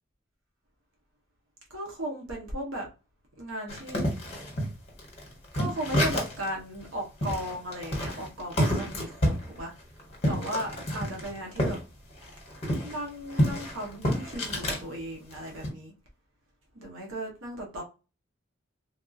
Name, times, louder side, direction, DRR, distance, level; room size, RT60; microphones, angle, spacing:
voice 1, 1.7-2.9 3.4-4.1 5.5-9.7 10.3-11.8 12.8-15.9 16.7-17.8, right 1 dB, 70° right, 0.9 m, -36 dB
sound 1, 3.7-6.5 6.8-6.9 7.2-11.8 12.1-14.8 15.3-15.7, equal, 30° left, 1.2 m, -29 dB
3.4 x 2.4 x 2.6 m
head